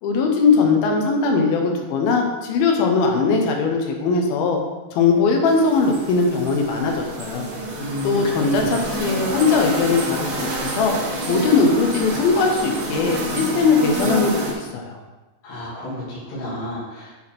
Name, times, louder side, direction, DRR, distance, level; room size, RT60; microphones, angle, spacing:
voice 1, 0.0-4.6 4.9-7.5 8.0-10.9 11.3-15.0, left 4 dB, 85° left, 2 dB, 2.8 m, -20 dB
sound 1, 5.5-14.5, right 1 dB, 60° right, 2.9 m, -28 dB
voice 2, 7.8-8.8 15.4-17.2, left 1 dB, 70° left, -7 dB, 4.1 m, -31 dB
9.1 x 4.3 x 4.3 m, 1.2 s
omnidirectional pair, 4.2 m